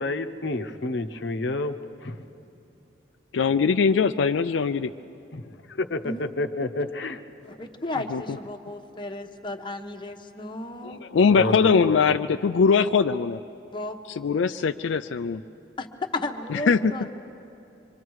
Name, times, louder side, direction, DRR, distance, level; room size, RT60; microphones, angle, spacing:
voice 1, 0.0-2.2 5.3-7.2 10.8-12.1, left 2 dB, 65° left, 8 dB, 0.9 m, -30 dB
voice 2, 3.3-4.9 8.1-8.2 11.1-13.4 14.2-15.4 16.5-16.9, left 5 dB, 80° left, 8 dB, 0.4 m, -21 dB
voice 3, 7.5-11.0 13.7-14.0 15.8-15.9 16.1-17.1, left 2 dB, 25° left, 3 dB, 1.0 m, -34 dB
25.5 x 24.5 x 4.8 m, 2.8 s
head